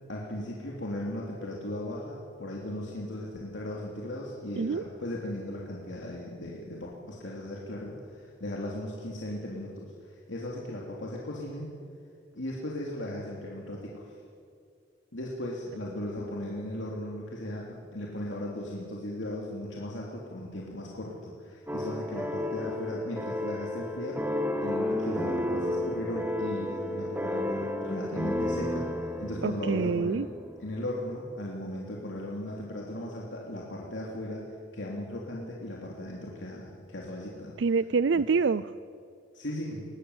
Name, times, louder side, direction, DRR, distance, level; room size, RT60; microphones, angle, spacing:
voice 1, 0.1-11.7 12.3-14.1 15.1-30.2 30.6-37.5 39.3-39.9, left 1 dB, 90° left, -3 dB, 3.1 m, -37 dB
sound 1, 21.7-30.7, left 1 dB, 10° right, 1.3 m, -32 dB
voice 2, 29.4-30.3 37.6-38.7, right 5 dB, 75° right, 15 dB, 0.5 m, -26 dB
22.5 x 18.0 x 8.1 m, 2.3 s
head